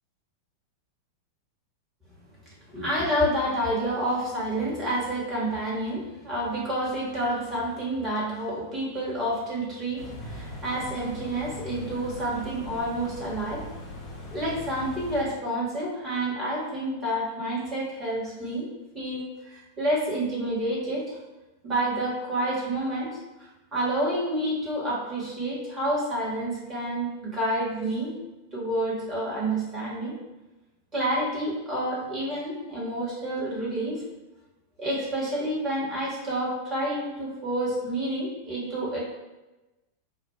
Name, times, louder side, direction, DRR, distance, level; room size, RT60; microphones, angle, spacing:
voice 1, 2.7-13.7 14.3-21.2 21.6-28.2 28.5-30.1 30.9-34.0 34.8-39.0, right 1 dB, 25° right, -6 dB, 1.4 m, -29 dB
sound 1, 10.0-15.2, left 1 dB, 35° left, 0.8 m, -40 dB
6.3 x 2.2 x 2.2 m, 1.1 s
figure-of-eight pair, 90°, 0 cm